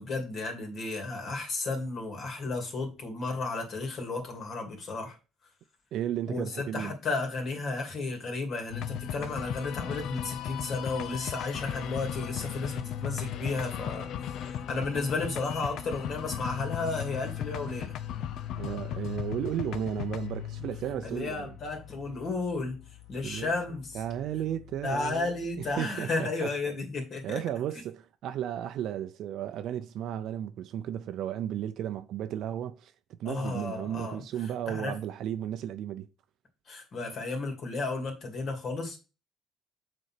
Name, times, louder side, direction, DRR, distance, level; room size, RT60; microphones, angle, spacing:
voice 1, 0.0-5.1 6.3-17.9 21.0-22.8 23.1-24.0 24.8-27.4 33.2-34.2 34.7-34.9 36.7-39.0, left 3 dB, 50° left, 2.7 m, -33 dB
voice 2, 5.9-6.9 18.6-21.5 23.2-23.5 23.9-26.5 27.2-32.9 33.2-36.1, right 10 dB, 70° right, 0.5 m, -34 dB
sound 1, 8.7-25.8, left 10 dB, 70° left, 0.6 m, -37 dB
6.5 x 4.2 x 5.8 m
cardioid pair, 110°, 0 cm